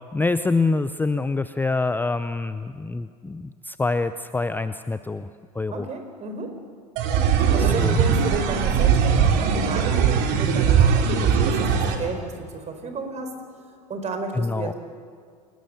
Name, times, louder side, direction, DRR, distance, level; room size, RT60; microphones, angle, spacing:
voice 1, 0.1-5.3 5.6-5.9 7.6-8.0 14.3-14.7, left 3 dB, 10° left, 12 dB, 0.7 m, -25 dB
voice 2, 5.7-6.5 7.5-13.3 13.9-14.7, right 4 dB, 35° right, 6 dB, 4.5 m, -33 dB
sound 1, 7.0-12.0, right 6 dB, 55° right, 3.2 m, -20 dB
29.0 x 19.0 x 6.8 m, 2.2 s
hypercardioid pair, 80°, 21 cm